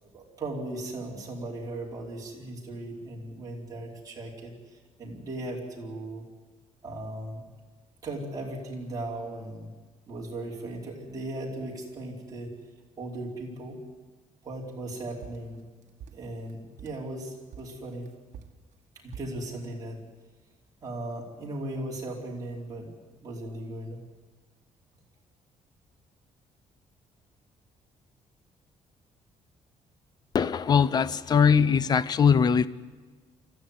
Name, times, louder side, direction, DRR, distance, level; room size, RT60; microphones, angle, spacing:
voice 1, 0.0-6.2 6.8-7.4 8.0-9.7 10.1-12.5 13.0-13.8 14.4-15.6 16.1-18.1 19.0-20.0 20.8-22.9 23.2-24.0, right 1 dB, 30° right, -3 dB, 4.8 m, -37 dB
sound 1, 15.2-17.1 17.5-19.4, right 7 dB, 65° right, 1.7 m, -46 dB
voice 2, 30.3-32.7, left 6 dB, 35° left, 16 dB, 0.6 m, -21 dB
25.0 x 14.5 x 9.8 m, 1.4 s
cardioid pair, 175°, 13 cm